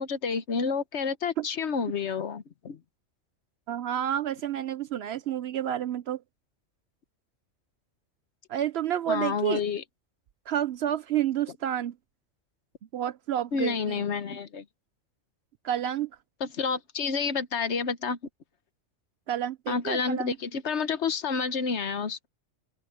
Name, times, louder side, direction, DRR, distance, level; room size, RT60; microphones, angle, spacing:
voice 1, 0.0-2.8 9.1-9.8 13.5-14.6 16.4-18.2 19.7-22.3, left 5 dB, 60° left, 1.2 m, -29 dB
voice 2, 3.7-6.2 8.5-9.6 10.5-11.9 12.9-14.0 15.6-16.1 19.3-20.4, right 10 dB, 65° right, 0.7 m, -29 dB
open air
omnidirectional pair, 1.3 m